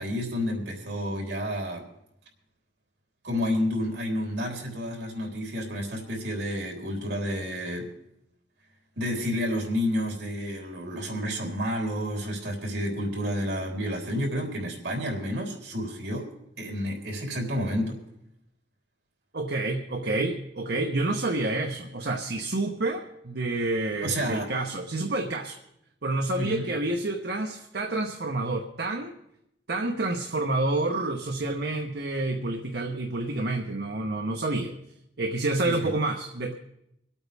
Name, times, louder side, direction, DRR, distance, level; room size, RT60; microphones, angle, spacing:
voice 1, 0.0-1.9 3.2-7.9 9.0-16.3 16.6-18.0 24.0-24.5 26.3-26.7 35.6-35.9, equal, 80° right, 0 dB, 3.5 m, -30 dB
voice 2, 19.3-25.6 26.0-29.1 29.7-34.7 35.2-36.5, right 2 dB, 65° right, 3 dB, 1.0 m, -28 dB
26.0 x 8.8 x 3.5 m, 0.80 s
head